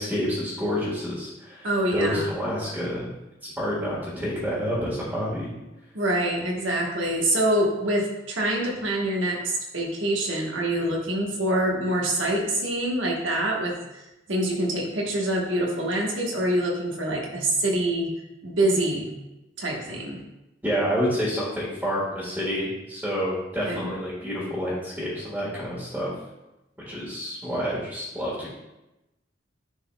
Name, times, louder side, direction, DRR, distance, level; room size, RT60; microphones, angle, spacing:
voice 1, 0.0-3.1 3.4-5.5 20.6-26.1 26.8-28.5, equal, 10° right, -10 dB, 1.5 m, -28 dB
voice 2, 1.6-2.3 5.9-14.0 14.3-18.1 18.4-19.1 19.6-20.2 23.7-23.9, right 1 dB, 90° right, -1 dB, 1.2 m, -25 dB
10.5 x 4.0 x 2.2 m, 0.97 s
head